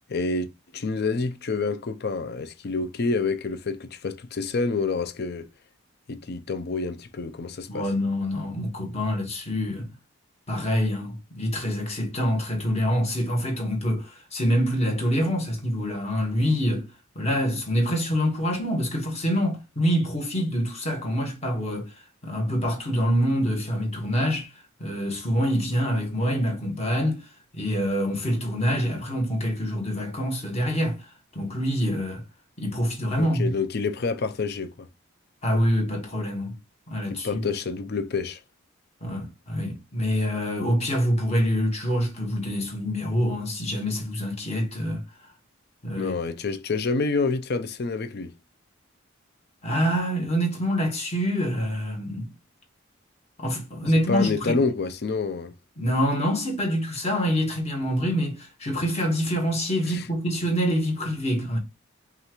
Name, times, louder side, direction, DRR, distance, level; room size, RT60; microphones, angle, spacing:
voice 1, 0.1-0.5 0.7-5.5 6.1-7.9 33.2-34.9 37.1-38.4 46.0-48.3 54.1-55.5 59.9-60.1, left 4 dB, 50° left, 0.5 m, -28 dB
voice 2, 7.7-9.9 10.5-16.9 17.1-32.2 32.6-33.5 35.4-36.6 36.9-37.4 39.0-45.0 45.8-46.1 49.6-52.3 53.4-54.6 55.8-61.6, equal, 30° left, 1.3 m, -26 dB
5.5 x 2.5 x 3.0 m
head